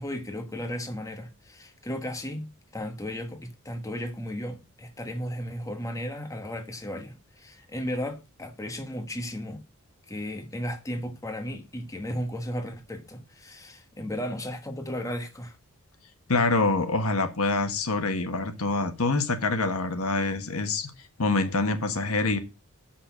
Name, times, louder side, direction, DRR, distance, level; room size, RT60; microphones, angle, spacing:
voice 1, 0.0-9.6 10.1-15.6, equal, 15° left, 1.2 m, -35 dB
voice 2, 16.3-20.9 21.2-22.4, left 3 dB, 75° left, 1.4 m, -25 dB
6.6 x 5.9 x 7.3 m
head